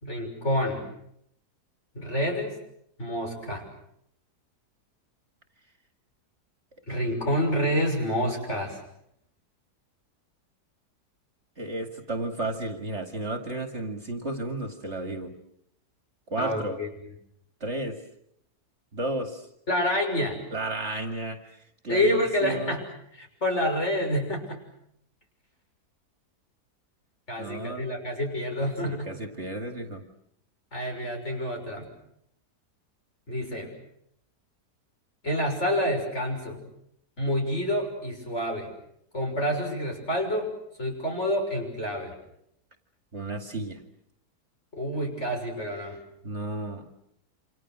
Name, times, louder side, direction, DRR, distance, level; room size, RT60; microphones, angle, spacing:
voice 1, 0.0-0.8 2.0-2.6 3.0-3.6 6.9-8.8 16.4-16.9 19.7-20.4 21.9-22.8 23.2-24.6 27.3-29.1 30.7-31.9 33.3-33.7 35.2-36.6 37.2-38.7 39.1-40.5 40.8-42.1 44.7-46.0, equal, 45° left, 2 dB, 6.7 m, -28 dB
voice 2, 11.6-15.3 16.3-16.8 17.6-18.0 18.9-19.5 20.5-22.8 27.4-27.8 28.8-30.1 43.1-43.8 46.2-46.9, right 2 dB, 45° right, 6 dB, 2.6 m, -33 dB
28.5 x 27.0 x 6.3 m, 0.72 s
omnidirectional pair, 1.7 m